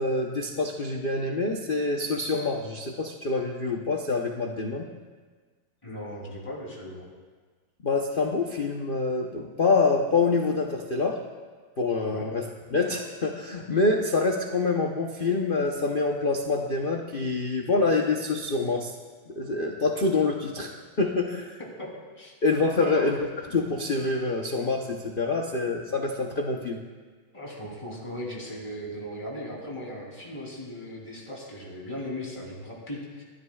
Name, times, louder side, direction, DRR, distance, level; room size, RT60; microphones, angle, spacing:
voice 1, 0.0-4.9 7.8-11.2 11.8-18.9 19.3-20.7 21.0-21.6 22.4-23.3 23.5-26.8, left 3 dB, 60° left, 1 dB, 0.5 m, -26 dB
voice 2, 5.8-7.1 12.1-12.3 21.6-21.9 22.2-22.3 22.7-23.1 27.3-33.2, left 1 dB, 15° left, -4 dB, 3.3 m, -37 dB
25.5 x 13.0 x 2.4 m, 1.4 s
omnidirectional pair, 2.4 m